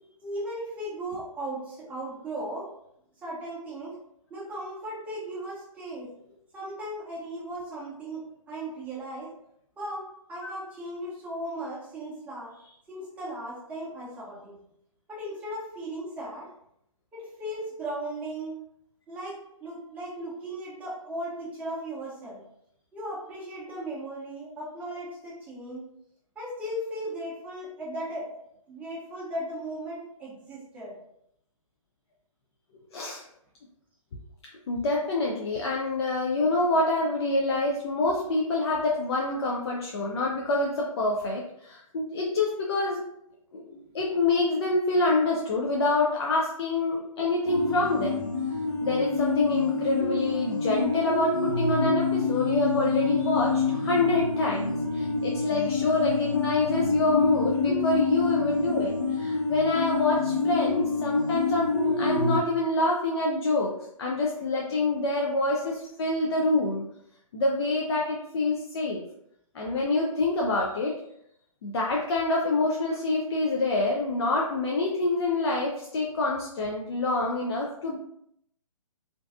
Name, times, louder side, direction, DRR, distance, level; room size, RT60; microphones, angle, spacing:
voice 1, 0.2-2.7 3.2-4.0 4.3-6.1 6.5-9.3 9.8-12.5 12.9-14.6 15.1-16.5 17.1-18.6 19.1-22.4 22.9-25.9 26.4-28.4 28.7-31.0, right 1 dB, 10° right, -8 dB, 0.7 m, -37 dB
voice 2, 32.9-33.2 34.7-43.0 43.5-48.3 48.8-63.7 64.0-66.8 67.3-69.0 69.5-70.9 71.6-78.0, left 2 dB, 50° left, -2 dB, 0.4 m, -26 dB
sound 1, 47.4-62.4, left 4 dB, 85° left, 0.8 m, -27 dB
2.5 x 2.2 x 2.4 m, 0.74 s
hypercardioid pair, 145°, 18 cm